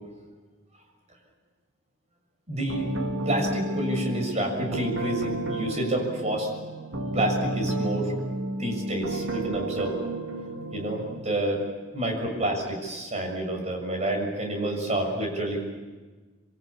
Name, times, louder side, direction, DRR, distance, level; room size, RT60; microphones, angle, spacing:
voice 1, 2.5-2.9 3.2-6.5 7.1-8.1 8.6-10.0 10.7-11.6 11.9-15.6, right 1 dB, 35° right, 1 dB, 6.8 m, -28 dB
sound 1, 2.7-11.2, right 1 dB, 85° right, 2.3 m, -31 dB
28.0 x 23.5 x 8.7 m, 1.3 s
head